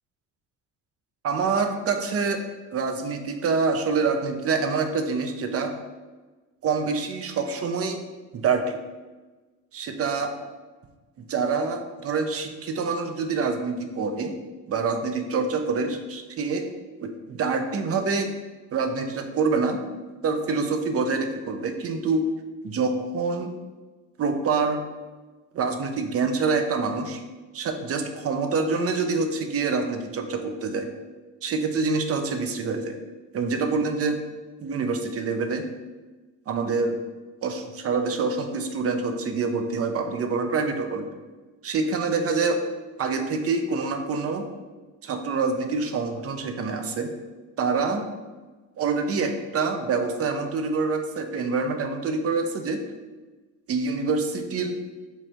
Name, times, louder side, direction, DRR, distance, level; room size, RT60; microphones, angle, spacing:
voice 1, 1.2-2.4 2.7-5.7 6.6-8.0 8.3-8.8 9.7-10.3 11.3-14.3 14.7-16.7 17.0-18.3 18.7-19.8 20.2-22.3 22.6-23.5 24.2-24.8 25.5-27.2 27.5-30.9 31.4-33.0 33.3-34.2 34.6-35.7 36.5-37.0 37.4-41.1 41.6-42.6 43.0-44.4 45.0-47.1 47.6-48.0 48.8-52.8 53.7-54.8, right 4 dB, 40° right, 6 dB, 0.6 m, -26 dB
4.8 x 2.5 x 3.3 m, 1.3 s
hypercardioid pair, 55°, 38 cm